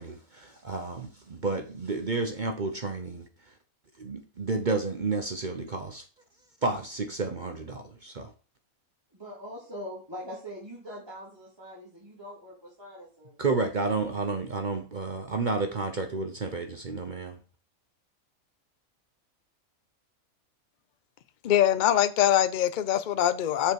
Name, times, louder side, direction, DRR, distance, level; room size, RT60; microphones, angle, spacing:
voice 1, 0.0-3.3 4.0-6.0 6.6-8.3 13.4-17.4, right 3 dB, 40° right, 0.8 m, -31 dB
voice 2, 9.1-13.4, equal, 15° right, 2.6 m, -42 dB
voice 3, 21.4-23.7, left 11 dB, 55° left, 0.5 m, -23 dB
6.7 x 5.2 x 4.6 m
omnidirectional pair, 1.5 m